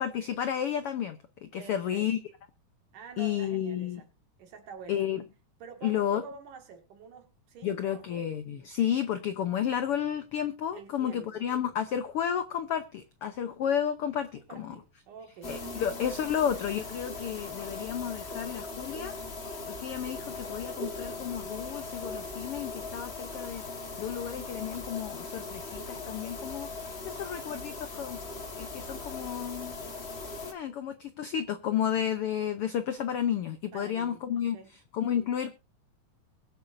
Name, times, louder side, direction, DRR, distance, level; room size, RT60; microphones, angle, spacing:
voice 1, 0.0-2.2 3.2-4.0 4.9-5.2 5.8-6.2 7.6-14.8 15.5-19.2 19.6-28.2 28.6-29.8 30.4-34.6 34.9-35.5, left 9 dB, 85° left, 1.2 m, -32 dB
voice 2, 1.6-2.1 2.9-4.1 4.4-5.1 5.6-8.0 10.7-11.4 14.5-15.8 33.7-34.2 34.5-34.7, right 6 dB, 75° right, 3.5 m, -47 dB
sound 1, 15.4-30.5, left 3 dB, 50° left, 0.7 m, -39 dB
22.5 x 8.0 x 2.6 m
omnidirectional pair, 3.7 m